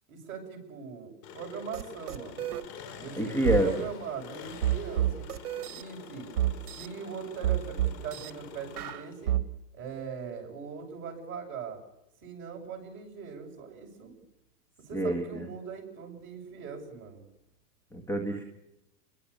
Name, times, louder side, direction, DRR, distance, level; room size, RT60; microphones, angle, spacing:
voice 1, 0.1-2.5 3.0-5.2 5.7-6.3 6.8-9.4 9.7-11.8 12.2-14.1 14.8-17.2, right 6 dB, 25° right, 1 dB, 7.3 m, -41 dB
Engine, 1.2-9.4, left 6 dB, 35° left, 5.0 m, -46 dB
sound 1, 1.7-2.6 3.4-3.6 4.6-5.8 6.4-6.9 7.4-8.3 8.8-9.4, right 12 dB, 65° right, 2.0 m, -28 dB
voice 2, 3.2-3.7 14.9-15.5 17.9-18.4, equal, 5° left, 4 dB, 1.7 m, -27 dB
29.5 x 22.0 x 7.0 m, 0.88 s
supercardioid pair, 155°, 47 cm